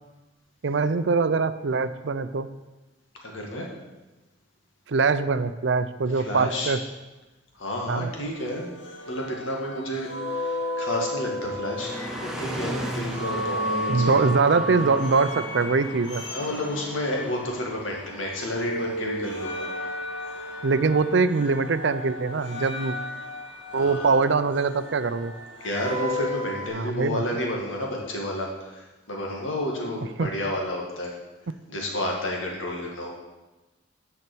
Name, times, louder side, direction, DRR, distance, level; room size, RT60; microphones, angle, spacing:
voice 1, 0.6-2.5 4.9-6.8 7.9-8.1 13.9-16.2 20.6-23.0 23.7-25.3 26.7-27.2 30.2-30.3, right 4 dB, 65° right, 12 dB, 0.5 m, -23 dB
voice 2, 3.2-3.7 6.1-6.8 7.5-8.7 9.1-12.0 12.2-14.3 16.3-19.7 23.7-24.1 25.6-31.1 31.7-33.1, left 1 dB, 85° left, -1 dB, 2.2 m, -31 dB
sound 1, 8.2-18.0 18.3-26.7, left 1 dB, 65° left, 1.9 m, -34 dB
sound 2, 11.8-25.8, right 1 dB, 5° right, 0.9 m, -39 dB
9.6 x 5.9 x 6.2 m, 1.1 s
head